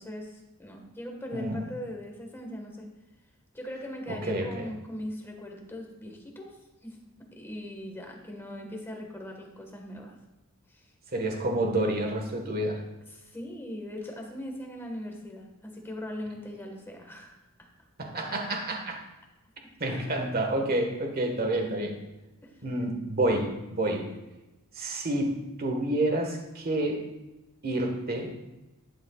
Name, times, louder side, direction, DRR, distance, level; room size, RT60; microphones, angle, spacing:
voice 1, 0.0-2.9 3.5-10.2 10.7-10.9 13.1-17.4 19.6-20.5 22.4-22.7, left 1 dB, 10° left, 1 dB, 1.6 m, -40 dB
voice 2, 1.3-1.6 4.1-4.7 11.1-12.8 18.0-19.0 19.8-22.0 22.6-24.1 24.7-27.0 27.6-28.3, right 1 dB, 45° right, 2 dB, 1.6 m, -29 dB
11.5 x 8.8 x 2.4 m, 1.0 s
head